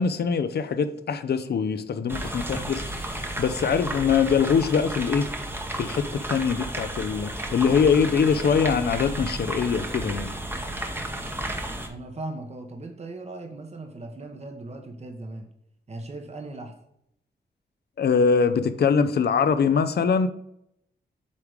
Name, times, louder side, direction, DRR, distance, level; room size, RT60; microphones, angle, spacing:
voice 1, 0.0-5.3 5.7-10.3 18.0-20.3, left 6 dB, 65° left, 0.6 m, -23 dB
sound 1, 2.1-11.9, right 1 dB, 10° right, 1.0 m, -33 dB
voice 2, 11.8-15.5 15.9-16.7, right 2 dB, 35° right, 1.1 m, -38 dB
8.4 x 3.3 x 5.0 m
wide cardioid pair, 95°, 18 cm